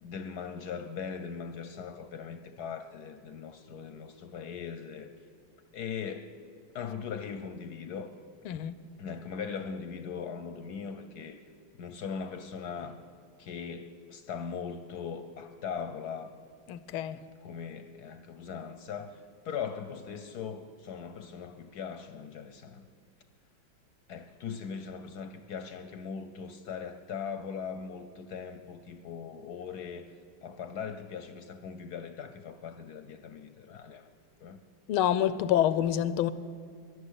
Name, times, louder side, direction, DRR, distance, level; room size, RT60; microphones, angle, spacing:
voice 1, 0.0-5.1 5.7-6.3 6.7-8.1 9.0-11.4 11.7-13.0 13.4-16.3 17.4-22.9 24.1-30.1 30.4-34.1 34.4-34.6, left 6 dB, 65° left, 1.0 m, -40 dB
voice 2, 8.4-8.8 16.7-17.2 34.9-36.3, left 11 dB, 90° left, 1.5 m, -27 dB
12.0 x 11.0 x 10.0 m
omnidirectional pair, 2.3 m